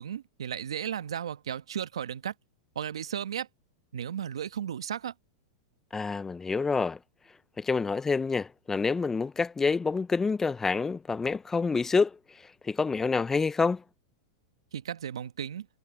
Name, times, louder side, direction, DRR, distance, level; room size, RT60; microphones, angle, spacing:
voice 1, 0.0-2.3 2.7-3.5 3.9-5.1 14.7-15.7, right 9 dB, 80° right, 1.5 m, -35 dB
voice 2, 5.9-7.0 7.6-12.2 12.6-13.8, left 4 dB, 15° left, 0.8 m, -27 dB
hypercardioid pair, 110°, 3 cm